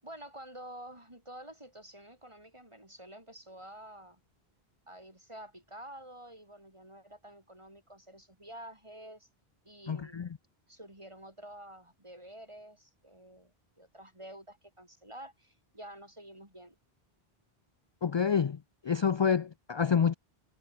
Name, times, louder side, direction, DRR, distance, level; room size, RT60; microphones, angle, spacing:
voice 1, 0.0-4.2 4.9-9.3 9.6-10.2 10.7-16.8, right 1 dB, 30° right, 6.5 m, -49 dB
voice 2, 9.9-10.3 18.0-18.6 18.8-20.1, left 7 dB, 50° left, 0.3 m, -27 dB
omnidirectional pair, 1.0 m